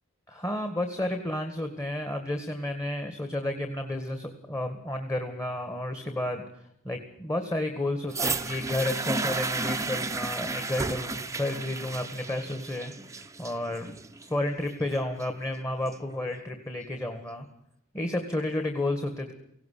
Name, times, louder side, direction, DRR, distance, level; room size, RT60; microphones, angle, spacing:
voice 1, 0.3-6.4 6.8-14.0 14.2-17.5 17.9-19.3, left 1 dB, 15° left, 5 dB, 1.9 m, -31 dB
sound 1, 8.1-16.1 16.9-17.0, right 3 dB, 15° right, 0.9 m, -33 dB
18.5 x 17.0 x 8.5 m, 0.73 s
head